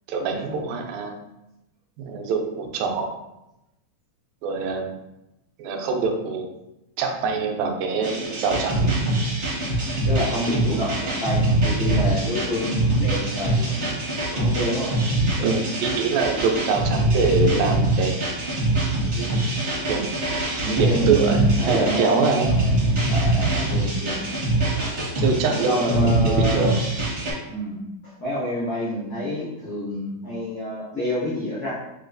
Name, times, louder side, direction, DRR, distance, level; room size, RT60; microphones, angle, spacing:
voice 1, 0.1-1.1 2.0-3.1 4.4-4.9 5.6-6.5 7.0-8.9 15.4-18.1 19.2-19.3 19.9-20.1 20.8-22.5 25.2-26.7, right 4 dB, 85° right, 3 dB, 2.3 m, -24 dB
sound 1, 8.0-27.3, right 2 dB, 65° right, 0.6 m, -23 dB
voice 2, 10.0-14.0 14.3-14.9 20.6-22.7 23.1-24.2 25.5-26.8 27.5-31.7, equal, 80° left, -9 dB, 1.0 m, -28 dB
6.7 x 2.2 x 2.5 m, 0.90 s
omnidirectional pair, 4.0 m